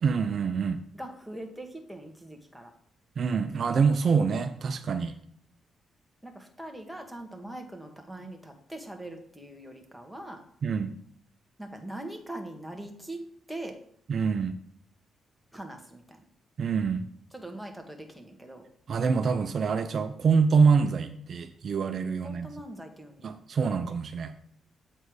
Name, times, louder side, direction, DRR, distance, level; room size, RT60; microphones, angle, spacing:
voice 1, 0.0-0.8 3.2-5.1 10.6-10.9 14.1-14.5 16.6-17.1 18.9-22.5 23.2-24.3, right 5 dB, 60° right, 7 dB, 0.5 m, -25 dB
voice 2, 0.9-2.7 6.2-10.4 11.6-13.2 13.5-13.7 15.5-16.2 17.3-18.6 22.2-23.3, right 1 dB, ahead, 3 dB, 1.6 m, -42 dB
8.0 x 4.3 x 4.9 m, 0.63 s
cardioid pair, 70°, 0 cm